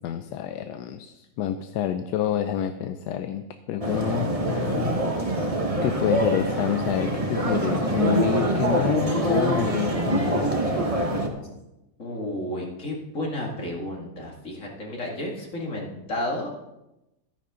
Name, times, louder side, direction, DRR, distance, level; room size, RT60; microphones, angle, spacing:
voice 1, 0.0-4.9 5.8-10.6, left 10 dB, 80° left, 9 dB, 1.2 m, -28 dB
sound 1, 3.8-11.3, right 1 dB, 25° right, 1.2 m, -25 dB
voice 2, 12.0-16.5, left 1 dB, 50° left, -2 dB, 2.6 m, -32 dB
13.5 x 10.0 x 3.7 m, 0.94 s
omnidirectional pair, 1.8 m